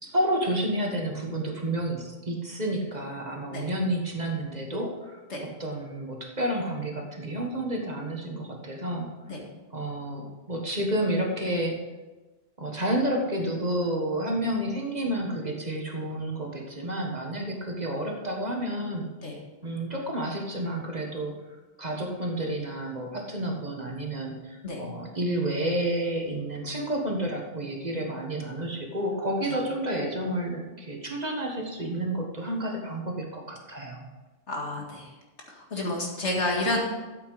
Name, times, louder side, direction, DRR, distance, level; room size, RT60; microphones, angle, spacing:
voice 1, 0.0-9.4 9.7-11.8 12.6-21.3 21.8-34.0, right 1 dB, 35° right, 1 dB, 1.5 m, -30 dB
voice 2, 34.5-35.1 35.7-36.8, left 2 dB, 70° left, 0 dB, 2.3 m, -29 dB
12.5 x 8.4 x 4.8 m, 1.2 s
omnidirectional pair, 1.2 m